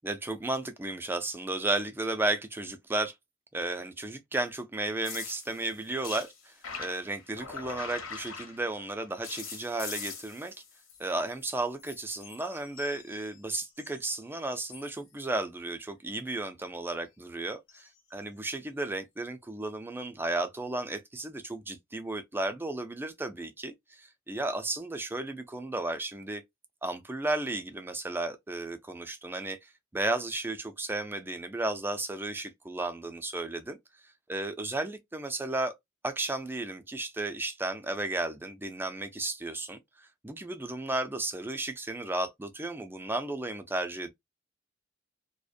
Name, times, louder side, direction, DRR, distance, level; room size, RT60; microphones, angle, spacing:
voice 1, 0.0-3.1 3.5-6.5 6.8-10.5 11.0-26.4 26.8-33.8 34.3-35.7 36.0-44.1, right 2 dB, 10° right, 0.4 m, -34 dB
sound 1, 5.0-8.9 9.2-11.5 11.8-14.1 14.6-15.0 17.7-17.9 18.8-18.9, left 5 dB, 85° left, 0.8 m, -43 dB
2.4 x 2.1 x 2.5 m
head